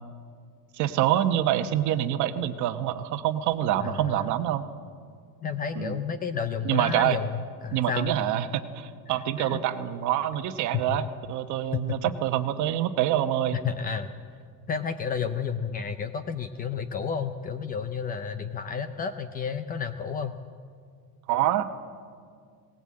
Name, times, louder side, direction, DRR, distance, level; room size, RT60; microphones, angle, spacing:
voice 1, 0.7-4.6 5.8-6.0 6.6-7.2 7.7-13.6 21.3-21.7, right 12 dB, 45° right, 9 dB, 1.1 m, -26 dB
voice 2, 3.8-4.3 5.4-8.1 9.4-9.6 10.7-11.0 11.7-12.0 13.6-14.1 14.7-20.4, left 6 dB, 20° left, 10 dB, 0.4 m, -31 dB
18.5 x 18.0 x 8.6 m, 2.1 s
cardioid pair, 170°, 40 cm